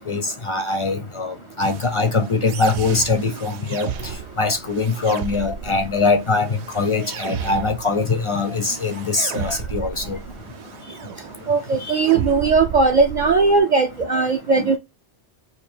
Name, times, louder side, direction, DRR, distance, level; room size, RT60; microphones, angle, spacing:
voice 1, 0.0-3.9 4.4-10.2 11.8-12.0 14.5-14.7, left 3 dB, 40° left, 0.5 m, -22 dB
sound 1, 1.6-13.6, right 6 dB, 85° right, 0.9 m, -34 dB
voice 2, 11.5-14.8, right 4 dB, 55° right, 0.5 m, -18 dB
2.8 x 2.6 x 4.2 m
omnidirectional pair, 1.1 m